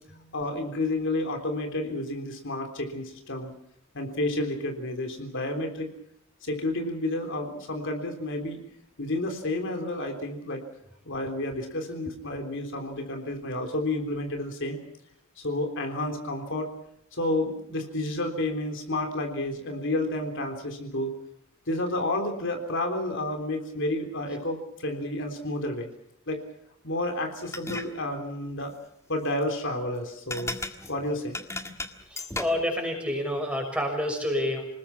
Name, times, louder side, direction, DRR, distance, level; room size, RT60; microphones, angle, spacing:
voice 1, 0.3-3.5 3.9-5.9 6.4-8.6 9.0-10.6 11.1-14.8 15.4-16.7 17.1-21.1 21.7-25.9 26.3-26.4 26.8-28.7 29.1-30.6 30.9-31.4, left 1 dB, 60° left, 4 dB, 3.6 m, -30 dB
sound 1, 27.4-27.9 30.3-32.7, left 2 dB, 15° left, 1.7 m, -35 dB
voice 2, 32.1-34.7, left 1 dB, 5° right, 2 dB, 6.2 m, -29 dB
28.5 x 19.5 x 6.0 m, 0.76 s
head